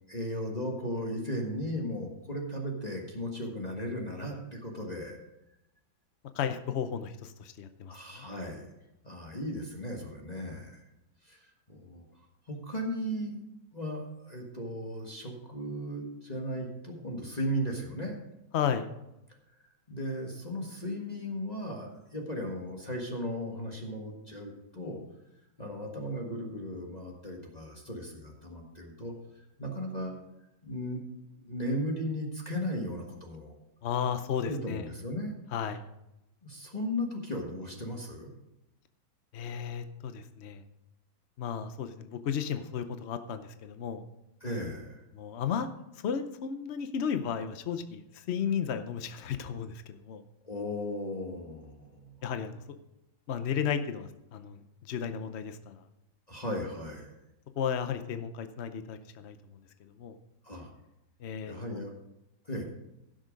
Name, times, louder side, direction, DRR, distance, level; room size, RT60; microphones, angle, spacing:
voice 1, 0.1-5.2 7.9-8.7 9.0-10.8 11.2-12.0 12.5-13.4 13.7-18.2 19.9-25.0 25.6-30.1 30.6-31.0 31.4-33.6 34.4-35.3 36.4-38.3 44.4-45.0 50.4-52.1 56.3-57.1 60.4-60.7 61.4-61.9 62.4-62.6, equal, 25° left, -1 dB, 1.5 m, -36 dB
voice 2, 6.3-8.3 18.5-18.9 33.8-34.9 35.5-35.8 39.3-40.6 41.4-44.0 45.2-45.7 46.0-50.2 52.2-52.6 53.3-55.8 57.6-59.4 60.0-60.1 61.2-61.8, left 7 dB, 75° left, 9 dB, 0.6 m, -34 dB
16.0 x 6.4 x 5.2 m, 0.89 s
omnidirectional pair, 2.0 m